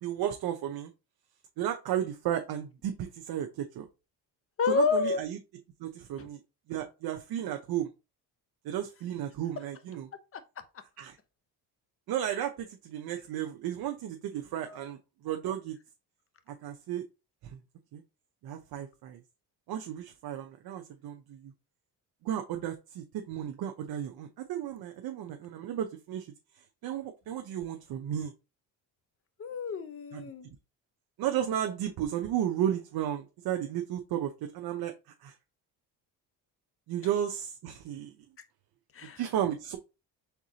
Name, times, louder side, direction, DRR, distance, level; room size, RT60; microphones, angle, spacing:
voice 1, 0.0-0.9 1.6-3.9 4.7-5.4 5.8-6.4 6.7-7.9 8.6-10.1 11.0-11.2 12.1-15.0 15.2-15.8 16.6-17.0 17.5-17.6 17.9-18.0 18.4-19.2 19.7-21.5 22.2-26.3 26.8-28.3 30.1-30.2 31.2-34.9 35.2-35.3 36.9-38.1 39.2-39.8, right 10 dB, 60° right, 0.7 m, -33 dB
voice 2, 4.6-5.2 6.2-6.3 10.3-10.4 14.6-14.8 29.4-30.5 38.9-39.2, left 5 dB, 35° left, 0.7 m, -29 dB
4.7 x 3.7 x 2.8 m
cardioid pair, 100°, 40 cm